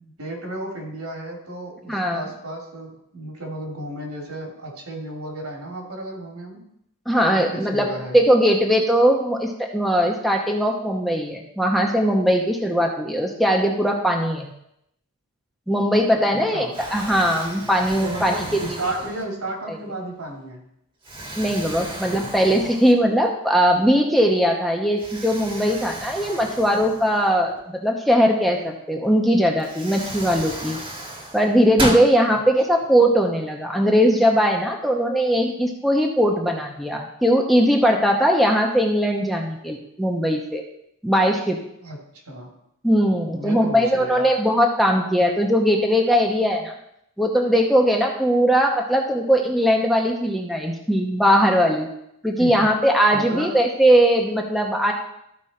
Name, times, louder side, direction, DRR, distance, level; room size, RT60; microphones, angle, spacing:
voice 1, 0.0-6.7 7.3-8.2 16.3-16.8 18.0-20.7 21.8-22.3 32.2-32.4 41.8-42.5 43.3-44.2 52.4-52.7 53.1-53.6, right 1 dB, 85° right, 0 dB, 2.8 m, -33 dB
voice 2, 1.9-2.2 7.1-7.9 8.1-14.5 15.7-16.7 16.9-18.4 21.4-30.8 31.3-40.6 41.0-41.6 42.8-46.7 47.2-51.9 52.2-54.9, equal, ahead, 0 dB, 0.8 m, -20 dB
Explosion, 16.0-16.4 16.7-19.6 20.2-20.3 21.0-23.3 23.6-23.7 25.0-27.6 29.0-29.1 29.6-32.1, right 1 dB, 20° right, 1.4 m, -34 dB
13.5 x 5.3 x 4.3 m, 0.77 s
head